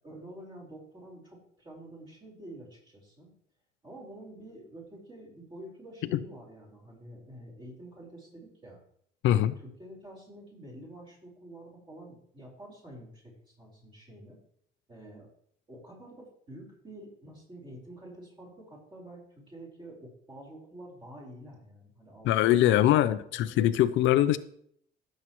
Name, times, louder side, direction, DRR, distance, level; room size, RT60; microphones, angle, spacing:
voice 1, 0.0-3.3 3.8-8.8 9.3-14.4 14.9-15.3 15.7-22.9 23.3-23.7, right 1 dB, 25° right, 4.6 m, -48 dB
voice 2, 9.2-9.5 22.2-24.4, left 13 dB, 70° left, 0.6 m, -23 dB
17.0 x 7.4 x 3.1 m
cardioid pair, 145°, 20 cm